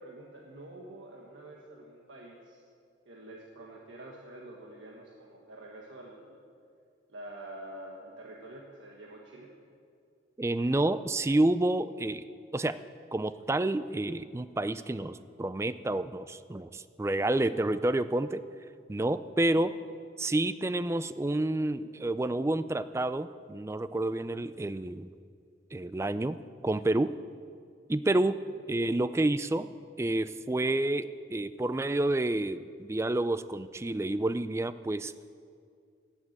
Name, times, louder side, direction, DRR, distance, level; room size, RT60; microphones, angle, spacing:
voice 1, 0.0-2.6 3.1-6.4 7.1-9.5 28.5-28.6, right 1 dB, 80° right, -2 dB, 1.5 m, -47 dB
voice 2, 10.4-12.2 12.5-12.8 13.1-18.4 18.9-19.7 20.2-25.1 25.7-26.4 26.6-27.1 27.9-28.4 28.7-29.7 30.0-35.1, right 2 dB, 15° right, 14 dB, 0.3 m, -29 dB
14.5 x 7.4 x 8.8 m, 2.3 s
head